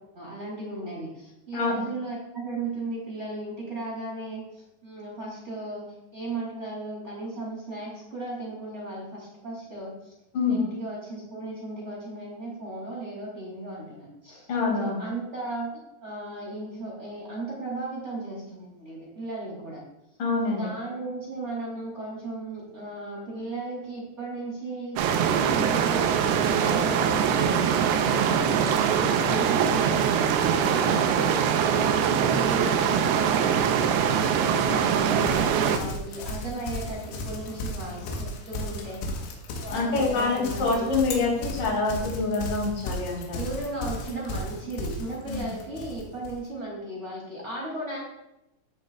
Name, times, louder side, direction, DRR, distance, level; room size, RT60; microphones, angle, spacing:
voice 1, 0.1-5.8 6.1-10.1 10.5-14.5 14.8-19.8 20.4-30.1 30.5-31.3 32.2-33.7 34.2-39.1 39.6-41.0 43.3-48.0, right 2 dB, 25° right, -5 dB, 1.7 m, -36 dB
voice 2, 1.5-1.9 10.3-10.6 14.5-15.0 20.2-20.7 39.7-43.4 45.3-45.5, left 3 dB, 50° left, -2 dB, 3.4 m, -26 dB
sound 1, 25.0-35.8, right 8 dB, 90° right, 2.3 m, -23 dB
Livestock farm animals working animals, 35.2-46.4, left 1 dB, 90° left, 3.4 m, -35 dB
15.0 x 6.5 x 2.3 m, 0.89 s
omnidirectional pair, 5.1 m